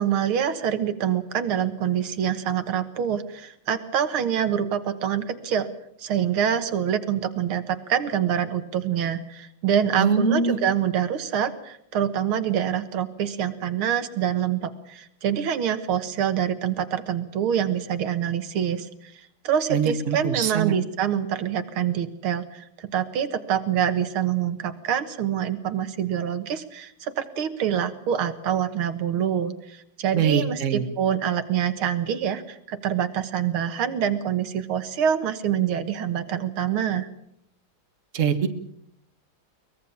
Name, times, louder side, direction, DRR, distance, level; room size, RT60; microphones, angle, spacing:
voice 1, 0.0-5.7 6.0-37.1, right 9 dB, 90° right, 9 dB, 2.2 m, -26 dB
voice 2, 10.0-10.6 19.7-20.7 30.1-30.8 38.1-38.5, right 6 dB, 40° right, 7 dB, 1.8 m, -23 dB
23.0 x 19.5 x 7.1 m, 0.73 s
omnidirectional pair, 2.2 m